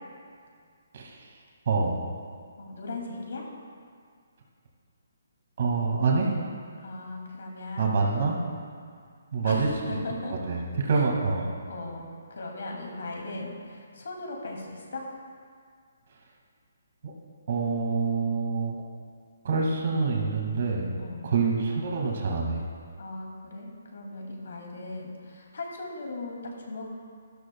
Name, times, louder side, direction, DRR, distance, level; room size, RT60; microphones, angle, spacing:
voice 1, 0.9-1.2 1.7-2.0 5.6-6.4 7.8-8.4 9.3-9.7 10.5-10.6 10.8-11.5 17.5-18.8 19.4-21.0 21.2-22.6, right 4 dB, 45° right, -1 dB, 2.0 m, -26 dB
voice 2, 2.6-3.4 6.8-8.0 9.4-10.3 10.9-11.1 11.6-15.0 21.0-21.3 23.0-26.9, left 2 dB, 70° left, 0 dB, 2.5 m, -38 dB
13.0 x 12.5 x 2.3 m, 2.1 s
hypercardioid pair, 170°, 0 cm